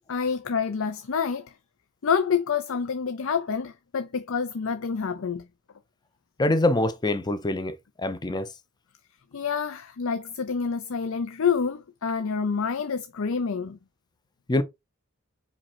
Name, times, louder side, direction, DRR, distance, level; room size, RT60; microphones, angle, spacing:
voice 1, 0.1-1.5 2.0-5.4 9.3-13.8, left 6 dB, 60° left, 0.5 m, -27 dB
voice 2, 6.4-7.7 8.0-8.5 14.5-14.6, left 2 dB, 20° left, 0.6 m, -24 dB
5.1 x 4.2 x 4.5 m
head